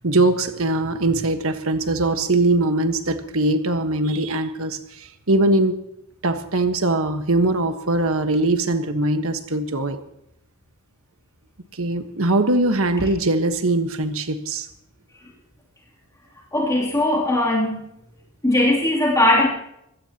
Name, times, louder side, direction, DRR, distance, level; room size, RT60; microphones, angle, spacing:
voice 1, 0.0-5.8 6.2-10.0 11.7-14.7, right 2 dB, 70° right, 7 dB, 1.4 m, -21 dB
voice 2, 16.5-17.8 18.4-19.5, left 1 dB, 15° left, -4 dB, 3.0 m, -19 dB
23.0 x 17.0 x 3.0 m, 0.80 s
head